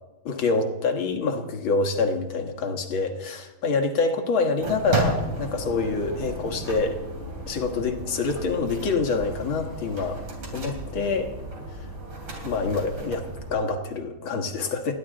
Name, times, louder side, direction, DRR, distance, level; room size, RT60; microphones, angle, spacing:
voice 1, 0.3-7.0 7.5-10.2 10.5-11.3 11.8-11.9 12.4-14.9, left 4 dB, 75° left, 4 dB, 2.2 m, -26 dB
sound 1, 4.6-13.5, right 2 dB, 85° right, 4.1 m, -33 dB
29.5 x 10.5 x 3.8 m, 1.1 s
omnidirectional pair, 2.3 m